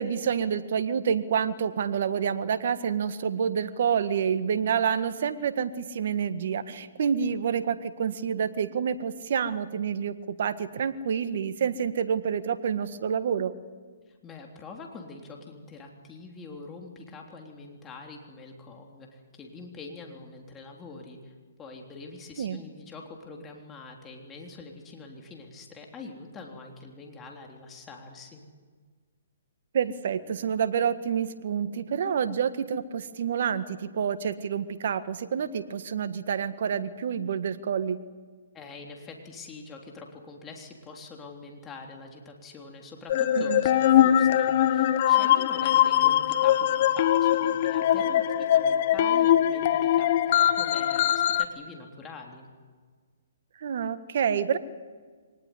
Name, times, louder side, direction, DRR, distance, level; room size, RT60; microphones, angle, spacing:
voice 1, 0.0-13.5 22.4-22.6 29.7-38.0 43.3-43.6 53.6-54.6, right 7 dB, 60° right, 11 dB, 1.6 m, -28 dB
voice 2, 14.1-21.3 21.6-28.4 38.5-52.5, left 3 dB, 15° left, 1 dB, 3.4 m, -44 dB
sound 1, 43.1-51.4, left 11 dB, 45° left, 1.2 m, -22 dB
24.0 x 19.5 x 9.9 m, 1.5 s
hypercardioid pair, 140°, 0 cm